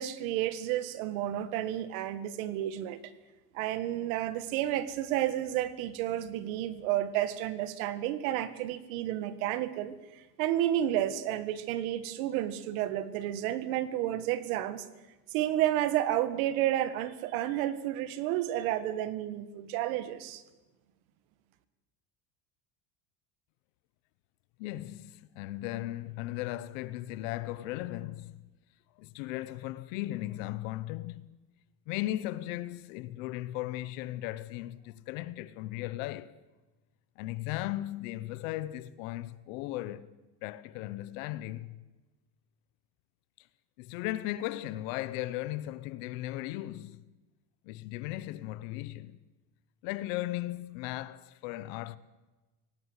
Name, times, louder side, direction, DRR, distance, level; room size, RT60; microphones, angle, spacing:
voice 1, 0.0-3.0 3.5-14.9 15.3-20.4, right 12 dB, 70° right, 1.9 m, -31 dB
voice 2, 24.6-28.4 28.9-31.3 31.9-36.4 37.2-40.1 40.4-41.8 43.4-43.5 43.8-47.0 47.6-49.2 49.8-52.0, left 15 dB, 60° left, 1.0 m, -37 dB
25.0 x 18.0 x 8.1 m
cardioid pair, 175°, 44 cm